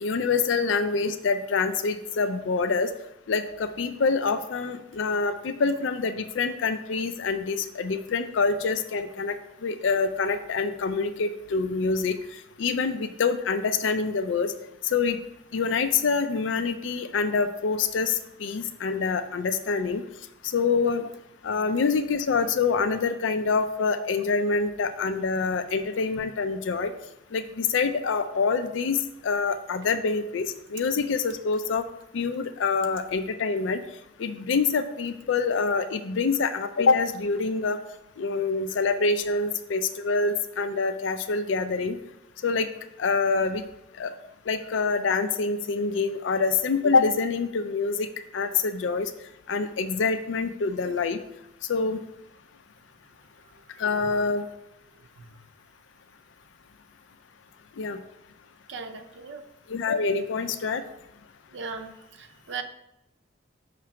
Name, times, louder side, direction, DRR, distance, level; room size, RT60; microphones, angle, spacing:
voice 1, 0.0-2.9 3.3-9.4 9.6-12.2 12.6-14.5 14.8-15.2 15.5-20.0 20.4-21.1 21.4-26.9 27.3-31.8 32.1-33.8 34.2-37.8 38.2-42.0 42.4-42.7 43.0-43.6 44.0-44.1 44.5-48.1 48.3-49.1 49.5-51.2 51.7-52.0 53.8-54.4 57.8-58.0 59.7-60.8, left 4 dB, 75° left, 9 dB, 0.4 m, -26 dB
voice 2, 55.0-55.3 58.7-59.5 61.5-62.6, right 5 dB, 70° right, 8 dB, 0.6 m, -38 dB
5.8 x 3.1 x 5.7 m, 0.86 s
head